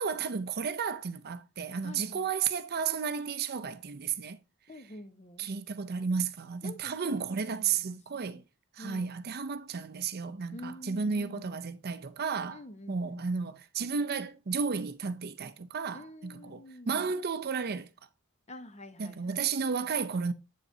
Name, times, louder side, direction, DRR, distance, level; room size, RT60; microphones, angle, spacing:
voice 1, 0.0-4.4 5.4-8.4 8.7-12.6 12.9-17.9 19.0-20.3, right 5 dB, 45° right, 0.6 m, -33 dB
voice 2, 1.8-2.3 4.7-5.5 6.6-7.2 7.6-8.0 8.3-8.4 8.8-9.1 10.5-11.6 12.5-13.3 15.9-17.1 18.5-19.5, left 1 dB, 30° left, 1.0 m, -47 dB
8.4 x 6.9 x 2.7 m
head